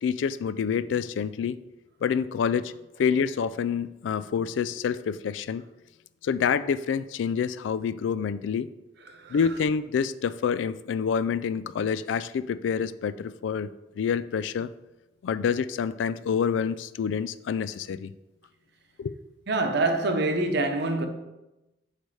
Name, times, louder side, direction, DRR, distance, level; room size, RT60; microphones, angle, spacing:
voice 1, 0.0-1.6 2.0-2.7 3.0-5.6 6.2-8.7 9.3-13.7 14.0-14.7 15.2-18.1 19.0-19.1, left 6 dB, 75° left, 0.3 m, -27 dB
voice 2, 9.1-9.4 19.5-21.1, right 2 dB, 65° right, 0.8 m, -25 dB
8.3 x 3.3 x 4.7 m
head